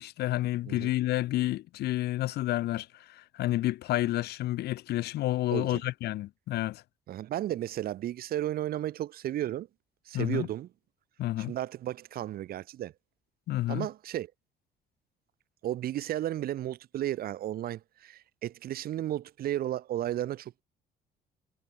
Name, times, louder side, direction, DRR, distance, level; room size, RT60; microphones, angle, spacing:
voice 1, 0.0-6.8 10.1-10.5 11.2-11.5 13.5-13.9, left 15 dB, 75° left, 1.6 m, -30 dB
voice 2, 7.1-9.7 10.0-10.7 11.4-12.9 13.7-14.3 15.6-20.6, right 13 dB, 60° right, 1.5 m, -34 dB
cardioid pair, 110°, 17 cm